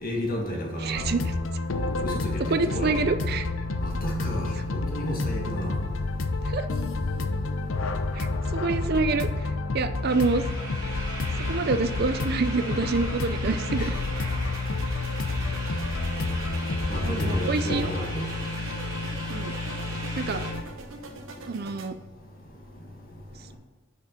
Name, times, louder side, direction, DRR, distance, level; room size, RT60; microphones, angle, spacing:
voice 1, 0.0-1.0 2.0-3.0 3.8-5.7 13.8-13.9 16.9-18.2, equal, 45° left, 0 dB, 1.8 m, -31 dB
voice 2, 0.8-1.2 2.5-3.5 6.5-6.6 8.2-9.3 9.7-10.4 11.5-13.9 17.0-17.9 19.3-19.5 20.2-20.4 21.5-21.9, right 3 dB, 50° right, 10 dB, 0.5 m, -27 dB
sound 1, 0.9-20.6, left 3 dB, 85° left, 0.7 m, -30 dB
sound 2, 10.1-20.5, right 2 dB, 20° right, 1.9 m, -39 dB
sound 3, 13.9-21.9, right 2 dB, 75° right, 0.9 m, -45 dB
6.5 x 6.0 x 5.4 m, 1.4 s
head